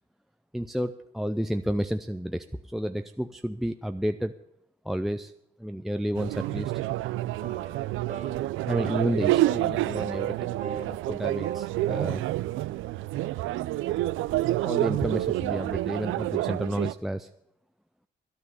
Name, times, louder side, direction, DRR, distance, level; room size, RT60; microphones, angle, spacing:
voice 1, 0.5-4.3 4.8-5.3 5.6-6.7 8.7-10.5 10.8-12.2 14.6-17.3, equal, ahead, 8 dB, 0.5 m, -31 dB
sound 1, 6.2-16.9, right 16 dB, 85° right, 0.4 m, -28 dB
sound 2, 7.4-7.8 8.1-8.4 8.7-9.1 9.3-9.6 9.9-10.9 11.2-12.2, right 6 dB, 40° right, 1.9 m, -37 dB
13.0 x 10.0 x 6.8 m, 0.76 s
cardioid pair, 90°, 20 cm